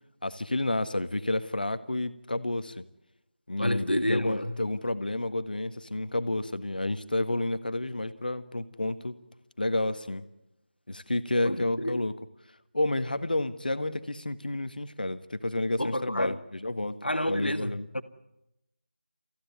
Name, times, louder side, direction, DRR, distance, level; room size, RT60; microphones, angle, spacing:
voice 1, 0.2-2.8 3.5-9.1 9.6-10.2 10.9-12.1 12.7-17.0 17.3-17.9, left 2 dB, 60° left, 1.7 m, -30 dB
voice 2, 3.6-4.6 11.4-12.0 15.8-16.4 17.0-18.0, left 1 dB, 85° left, 2.0 m, -29 dB
28.0 x 15.5 x 9.6 m
figure-of-eight pair, 165°, 5 cm